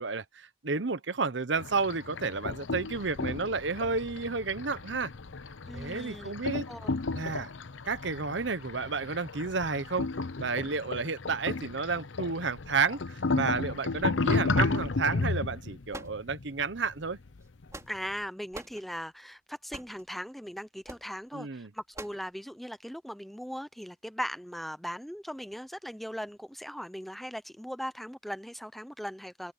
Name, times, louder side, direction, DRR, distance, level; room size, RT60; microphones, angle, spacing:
voice 1, 0.0-5.1 5.7-6.6 7.1-7.5 7.9-10.1 10.4-17.2 21.3-21.7, right 4 dB, 65° right, 1.0 m, -31 dB
sound 1, 1.6-17.7, left 3 dB, 75° left, 0.8 m, -33 dB
voice 2, 5.7-6.3 6.7-7.0 17.9-29.5, equal, ahead, 0.7 m, -39 dB
sound 2, 15.9-16.7 17.4-18.2 18.5-18.8 19.7-20.0 20.9-21.1 21.9-22.3, right 2 dB, 15° right, 3.3 m, -44 dB
open air
head